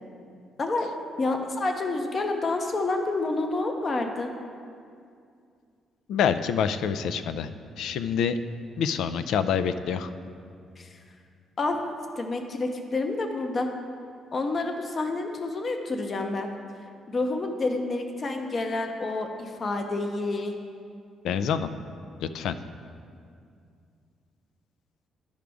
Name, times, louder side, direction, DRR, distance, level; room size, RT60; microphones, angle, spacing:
voice 1, 1.2-4.3 10.8-10.9 11.6-11.8 12.2-13.7 14.3-16.5 17.1-20.6, left 2 dB, 40° left, 5 dB, 0.7 m, -28 dB
voice 2, 6.1-7.5 7.8-8.4 8.8-10.1 21.2-21.7 22.2-22.6, left 7 dB, 80° left, 11 dB, 0.3 m, -26 dB
12.5 x 5.0 x 3.5 m, 2.3 s
cardioid pair, 90°, 0 cm